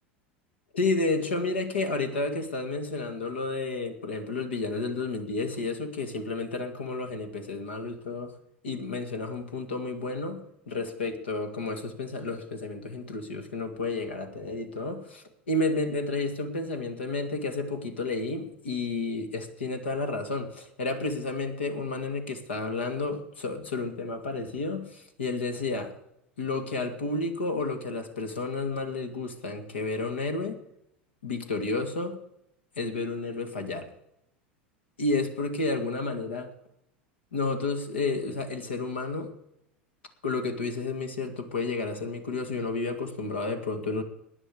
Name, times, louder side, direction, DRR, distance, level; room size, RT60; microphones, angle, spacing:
voice 1, 0.7-8.4 8.6-10.4 10.7-25.9 26.4-30.6 31.2-32.2 32.8-33.9 35.0-36.5 37.3-39.3 40.2-44.0, left 3 dB, 80° left, 6 dB, 2.1 m, -31 dB
18.5 x 10.0 x 4.9 m, 0.80 s
hypercardioid pair, 85°, 6 cm